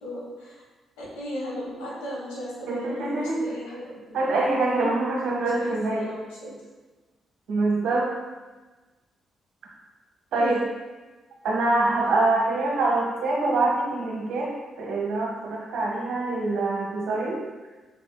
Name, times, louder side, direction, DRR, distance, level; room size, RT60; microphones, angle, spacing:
voice 1, 0.0-0.6 1.0-4.2 5.4-6.5 10.4-10.6, equal, 80° left, -6 dB, 1.3 m, -36 dB
voice 2, 2.7-3.4 4.1-6.0 7.5-8.1 10.3-10.6 11.4-14.5 14.8-17.4, right 2 dB, 70° right, -2 dB, 1.0 m, -24 dB
4.9 x 3.8 x 2.2 m, 1.2 s
hypercardioid pair, 45°, 0 cm